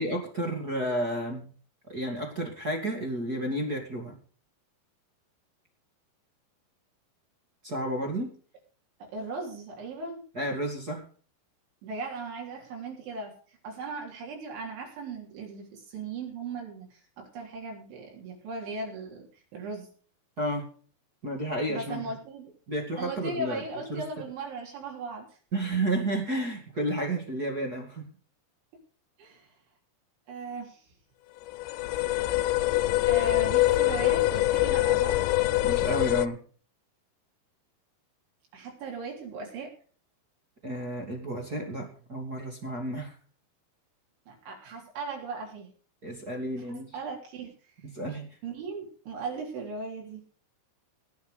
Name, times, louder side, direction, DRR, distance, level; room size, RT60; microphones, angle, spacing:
voice 1, 0.0-1.5 1.9-4.2 7.6-8.3 10.3-11.0 20.4-20.6 21.2-22.1 22.7-23.6 23.9-24.0 25.5-28.1 35.6-36.4 40.6-43.1 46.0-46.9 47.9-48.3, right 1 dB, 35° right, 1 dB, 1.7 m, -31 dB
voice 2, 9.0-10.2 11.8-13.3 13.6-19.9 21.7-22.5 23.0-25.3 29.2-29.5 30.3-30.9 33.1-35.2 38.5-39.7 44.3-45.7 46.7-47.5 48.4-50.2, right 3 dB, 75° right, -1 dB, 5.9 m, -38 dB
sound 1, 31.5-36.3, left 17 dB, 80° left, 2.9 m, -24 dB
19.0 x 7.5 x 5.0 m, 0.42 s
omnidirectional pair, 5.4 m